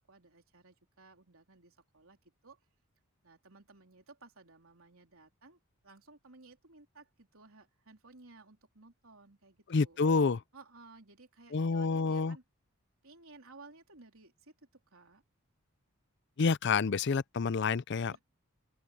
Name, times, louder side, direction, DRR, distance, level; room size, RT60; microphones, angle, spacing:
voice 1, 0.0-2.6 3.2-10.0 10.5-12.4 13.0-15.2 18.1-18.2, right 3 dB, 70° right, 3.7 m, -57 dB
voice 2, 9.7-10.4 11.5-12.4 16.4-18.1, left 4 dB, 50° left, 0.5 m, -28 dB
open air
head